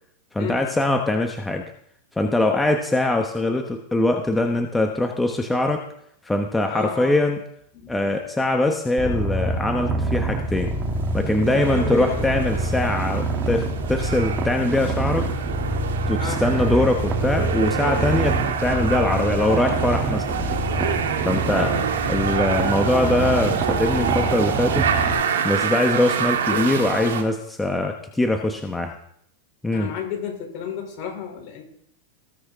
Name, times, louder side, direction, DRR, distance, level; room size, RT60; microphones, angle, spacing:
voice 1, 0.3-1.7 2.2-5.8 6.2-7.4 7.9-10.7 11.1-15.3 16.1-20.6 21.2-21.8 22.1-24.9 25.4-29.0 29.6-29.9, left 2 dB, 10° left, 3 dB, 1.1 m, -22 dB
voice 2, 6.7-7.2 7.7-7.9 11.4-12.3 16.2-16.5 26.5-26.7 29.7-31.6, left 7 dB, 55° left, 0 dB, 4.5 m, -32 dB
Purr, 9.0-25.1, right 2 dB, 25° right, 2.5 m, -26 dB
sound 1, 11.1-27.2, right 7 dB, 85° right, 1.7 m, -27 dB
19.0 x 6.3 x 3.6 m, 0.71 s
hypercardioid pair, 110°, 0 cm